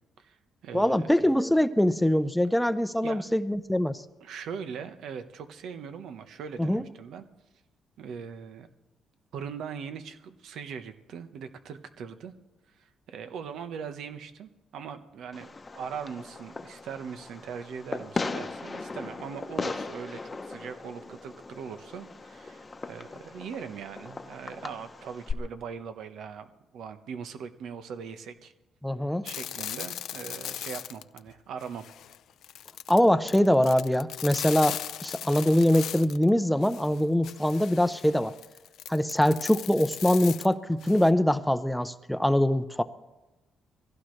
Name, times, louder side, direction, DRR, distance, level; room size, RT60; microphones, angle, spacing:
voice 1, 0.2-1.1 3.0-3.2 4.2-7.3 8.0-8.7 9.3-12.3 12.8-26.5 26.7-28.5 29.2-31.8, right 6 dB, 75° right, 9 dB, 1.2 m, -40 dB
voice 2, 0.7-4.0 6.6-6.8 28.8-29.2 32.9-38.3 38.9-42.8, left 1 dB, 5° left, 11 dB, 0.7 m, -23 dB
Fireworks, 15.3-25.3, left 3 dB, 25° left, 0.9 m, -38 dB
sound 1, 29.3-31.3 31.6-36.3 36.6-41.1, left 11 dB, 75° left, 0.5 m, -38 dB
23.0 x 16.0 x 3.3 m, 1.0 s
cardioid pair, 90°, 0 cm